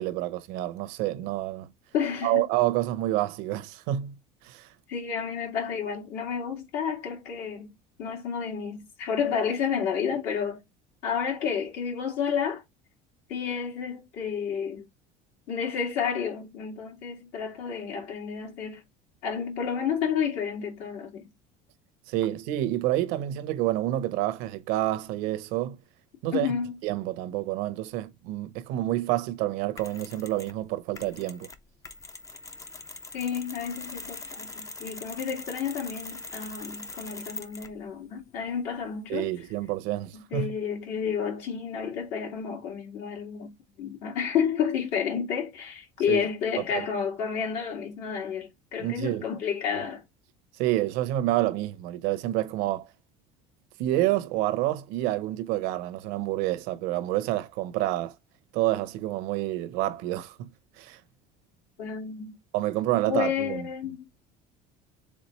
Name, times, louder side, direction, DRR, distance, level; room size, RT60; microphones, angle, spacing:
voice 1, 0.0-1.7 2.2-4.2 4.4-4.7 22.1-25.8 26.2-26.5 26.8-31.5 39.1-40.5 46.1-46.2 48.8-49.2 50.6-52.9 53.8-58.1 58.5-60.5 60.8-61.0 62.5-63.6, right 15 dB, 75° right, 0.8 m, -28 dB
voice 2, 1.9-2.5 4.9-7.7 8.0-10.6 11.0-12.6 13.3-14.9 15.5-18.8 19.2-21.3 26.3-26.8 33.1-39.3 40.1-50.0 61.8-62.4 63.1-64.0, left 7 dB, 70° left, 2.2 m, -30 dB
Mechanisms, 29.8-30.6 30.9-37.8, left 3 dB, 20° left, 0.5 m, -42 dB
4.2 x 3.8 x 3.1 m
cardioid pair, 145°, 16 cm